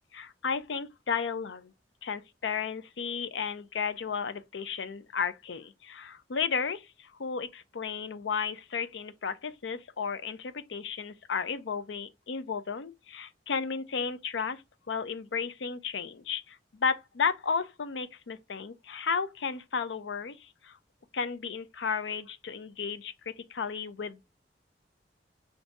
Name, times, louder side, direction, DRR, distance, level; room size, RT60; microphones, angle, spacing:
voice 1, 0.1-1.7 2.0-14.6 14.9-20.8 21.1-24.2, left 6 dB, 85° left, 0.5 m, -33 dB
3.8 x 2.6 x 4.6 m
head